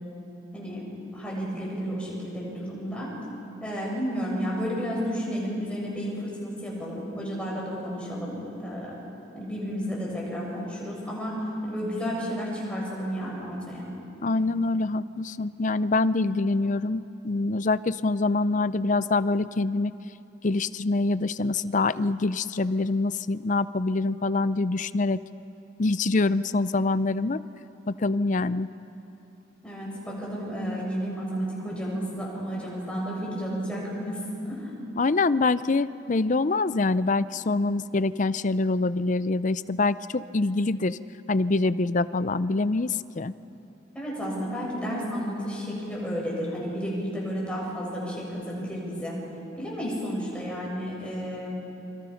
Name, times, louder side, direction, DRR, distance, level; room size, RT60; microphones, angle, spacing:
voice 1, 1.1-3.1 3.6-9.0 9.3-11.3 11.6-13.9 29.6-34.2 34.5-34.7 43.9-49.1 49.6-51.5, equal, 5° left, -5 dB, 7.2 m, -32 dB
voice 2, 14.2-19.9 20.4-25.2 25.8-27.4 27.9-28.7 35.0-41.0 41.3-43.3, left 3 dB, 40° left, 15 dB, 0.5 m, -25 dB
29.5 x 26.0 x 5.8 m, 2.9 s
head